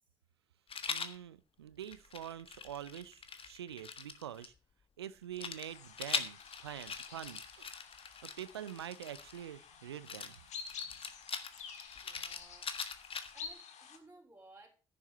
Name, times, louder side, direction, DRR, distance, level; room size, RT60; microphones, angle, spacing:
Rattle, 0.7-1.2 1.8-4.5 5.4-9.4 10.1-13.5, left 6 dB, 45° left, 1.4 m, -42 dB
voice 1, 0.9-4.5 5.0-7.7 8.2-10.4 10.8-11.1, right 10 dB, 90° right, 18 dB, 0.5 m, -46 dB
sound 1, 5.6-14.0, left 6 dB, 60° left, 1.6 m, -50 dB
voice 2, 12.0-12.7 13.3-14.8, right 2 dB, 15° right, -1 dB, 3.5 m, -59 dB
10.5 x 7.1 x 6.6 m, 0.34 s
figure-of-eight pair, 45°, 13 cm